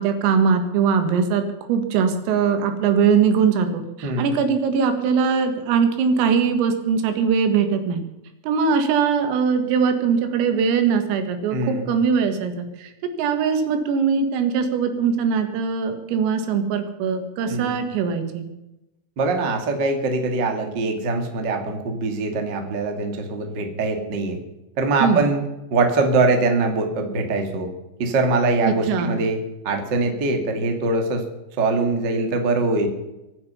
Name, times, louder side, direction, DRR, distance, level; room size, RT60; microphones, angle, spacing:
voice 1, 0.0-8.0 8.4-12.9 13.2-18.5 25.0-25.3 28.7-29.2, right 6 dB, 80° right, 7 dB, 4.4 m, -21 dB
voice 2, 4.0-4.4 11.5-11.9 17.5-17.8 19.2-24.4 24.8-25.4 25.7-27.7 28.0-31.2 31.6-32.9, right 3 dB, 60° right, 4 dB, 1.1 m, -22 dB
24.0 x 9.5 x 5.6 m, 0.95 s
omnidirectional pair, 5.9 m